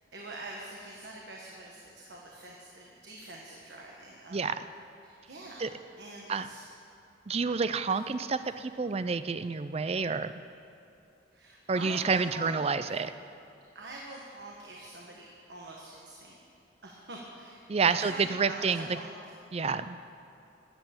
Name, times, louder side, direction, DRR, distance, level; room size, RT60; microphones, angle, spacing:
voice 1, 0.1-4.5 5.0-6.7 7.9-8.0 8.4-8.5 11.3-12.9 13.7-16.4 16.8-19.3, right 2 dB, 60° right, -2 dB, 1.4 m, -45 dB
voice 2, 7.3-10.3 11.7-13.1 17.7-18.9 19.5-20.0, right 5 dB, 35° right, 12 dB, 0.4 m, -29 dB
13.5 x 8.2 x 8.7 m, 2.6 s
head